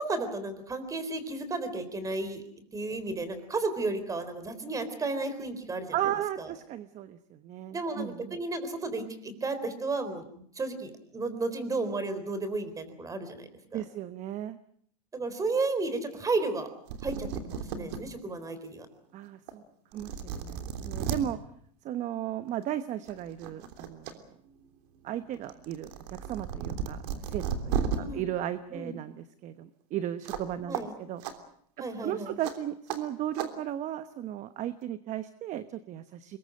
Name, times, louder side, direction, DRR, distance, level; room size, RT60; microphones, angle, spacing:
voice 1, 0.0-2.4 2.7-6.0 6.4-6.5 7.7-13.8 15.1-16.7 17.0-18.9 27.9-28.2 28.7-29.0 30.7-30.9 31.8-32.3, right 3 dB, 15° right, 11 dB, 3.9 m, -33 dB
voice 2, 5.9-8.4 13.7-14.6 19.1-19.6 19.9-21.4 21.8-24.2 25.0-25.9 26.3-31.2 32.0-36.4, right 11 dB, 35° right, 12 dB, 1.0 m, -35 dB
sound 1, 16.6-16.7 16.9-18.0 18.5-18.6 19.5-19.6 19.9-21.2 22.5-22.7 23.1-24.1 24.5-28.0 30.2-30.5 30.7-30.8 31.2-31.3 32.4-32.5 32.9-33.0 33.3-33.5, right 8 dB, 75° right, 3.4 m, -34 dB
25.0 x 21.5 x 7.7 m, 0.64 s
supercardioid pair, 135°, 21 cm